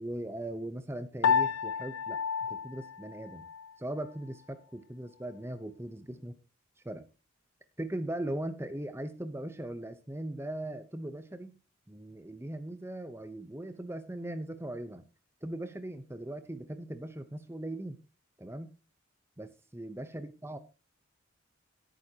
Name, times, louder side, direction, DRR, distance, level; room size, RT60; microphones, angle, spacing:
voice 1, 0.0-2.2 2.5-3.4 3.8-6.3 6.8-7.1 7.8-11.6 11.9-15.0 15.4-18.0 18.4-18.7 19.4-20.6, right 1 dB, 10° right, 10 dB, 0.8 m, -39 dB
Piano, 1.2-3.8, left 6 dB, 85° left, 0.5 m, -30 dB
17.5 x 9.1 x 2.9 m, 0.31 s
head